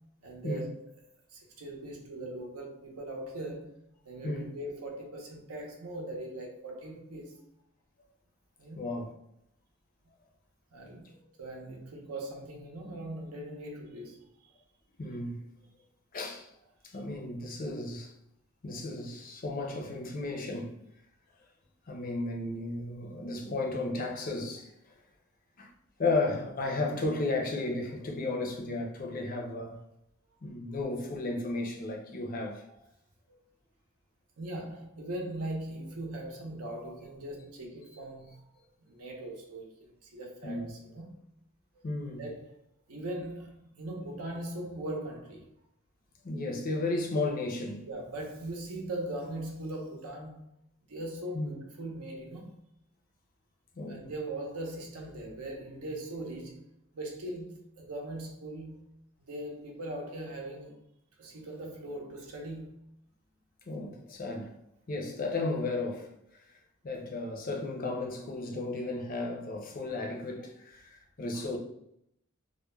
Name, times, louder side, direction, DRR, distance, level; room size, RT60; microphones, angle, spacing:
voice 1, 0.2-0.9 1.3-3.8 4.0-7.4 8.6-8.9 10.7-14.5 33.3-33.4 34.4-38.4 38.8-41.2 42.2-42.5 42.9-45.4 47.9-50.5 50.9-52.5 53.9-56.7 56.9-58.8 59.3-60.8 61.2-62.7 71.3-71.5, right 1 dB, 85° right, 0.6 m, -40 dB
voice 2, 8.8-9.1 15.0-15.4 16.1-16.5 16.8-18.1 18.6-20.8 21.8-25.0 25.6-25.7 26.0-29.8 30.4-32.6 40.4-40.7 41.8-42.2 46.2-47.9 51.3-51.6 53.8-54.1 63.7-64.5 64.9-66.6 66.8-71.6, left 2 dB, 40° left, 0.4 m, -34 dB
2.2 x 2.0 x 3.1 m
head